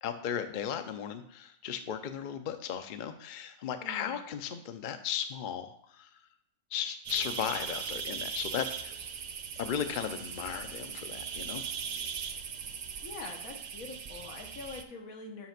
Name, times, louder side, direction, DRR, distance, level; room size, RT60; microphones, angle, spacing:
voice 1, 0.0-6.1 6.7-8.9 9.6-11.6, left 8 dB, 55° left, 8 dB, 0.6 m, -36 dB
voice 2, 3.8-4.2 13.0-15.5, left 3 dB, 85° left, 3 dB, 1.5 m, -44 dB
sound 1, 7.1-14.8, right 6 dB, 80° right, 0.4 m, -39 dB
5.8 x 4.9 x 5.9 m, 0.71 s
omnidirectional pair, 1.4 m